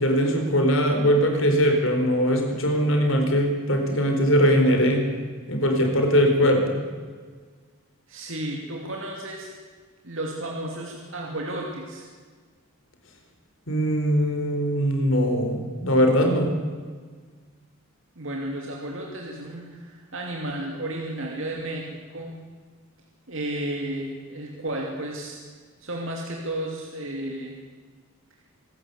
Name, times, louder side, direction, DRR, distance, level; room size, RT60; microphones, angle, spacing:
voice 1, 0.0-5.0 5.5-6.8 13.7-16.5, equal, 60° left, 3 dB, 4.4 m, -21 dB
voice 2, 8.1-9.5 10.0-12.1 18.2-22.3 23.3-25.4 25.8-27.6, right 1 dB, 60° right, -1 dB, 2.8 m, -33 dB
25.5 x 13.0 x 8.4 m, 1.5 s
head